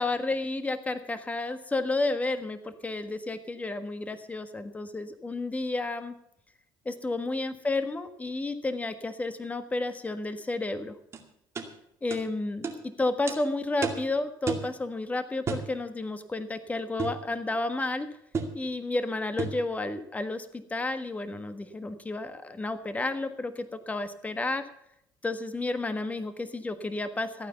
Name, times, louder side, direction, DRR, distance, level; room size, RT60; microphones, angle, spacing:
voice 1, 0.0-6.1 6.8-10.9 12.0-12.7 13.0-18.1 18.5-24.6 25.2-27.5, left 2 dB, 15° left, 10 dB, 1.5 m, -31 dB
sound 1, 11.1-11.2 11.5-11.7 12.1-12.2 12.6-12.8 13.3-13.4 13.8-14.1 14.5-14.7 15.5-15.7 17.0-17.2 18.3-18.6 19.4-19.6, right 4 dB, 30° right, 2.3 m, -31 dB
14.5 x 9.4 x 6.9 m, 0.76 s
cardioid pair, 110°, 9 cm